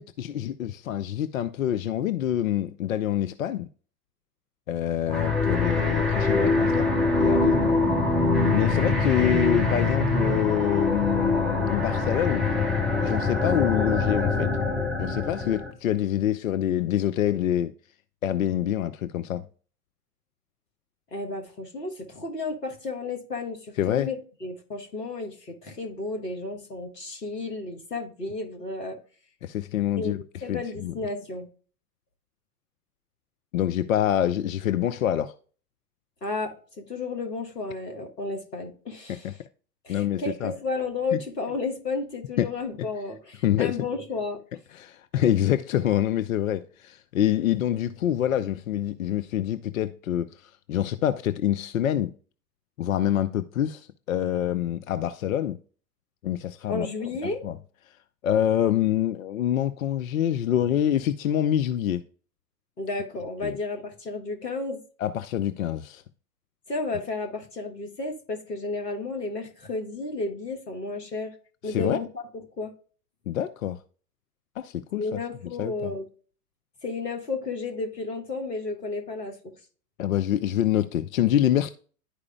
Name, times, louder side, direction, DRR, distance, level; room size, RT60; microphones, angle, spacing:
voice 1, 0.0-3.7 4.7-6.9 7.2-7.7 8.5-12.4 13.0-14.5 15.0-17.7 18.2-19.4 23.8-24.1 29.4-30.2 30.5-30.9 33.5-35.3 39.1-39.3 39.9-40.5 41.1-41.2 42.4-42.5 43.4-43.8 44.7-52.1 52.8-55.6 56.2-56.9 57.4-57.5 58.2-62.0 63.4-63.6 65.0-66.0 71.6-72.0 73.3-73.8 74.6-75.2 75.6-75.9 80.0-81.7, left 11 dB, 60° left, 0.5 m, -26 dB
sound 1, 5.1-15.7, left 3 dB, ahead, 0.6 m, -24 dB
voice 2, 21.1-29.0 30.0-30.1 30.4-31.5 36.2-39.4 39.8-44.4 56.7-57.4 62.8-64.8 66.7-71.3 71.6-72.7 75.0-76.1 76.8-79.5, left 3 dB, 75° left, 1.5 m, -32 dB
11.5 x 4.8 x 2.2 m
figure-of-eight pair, 95°, 48 cm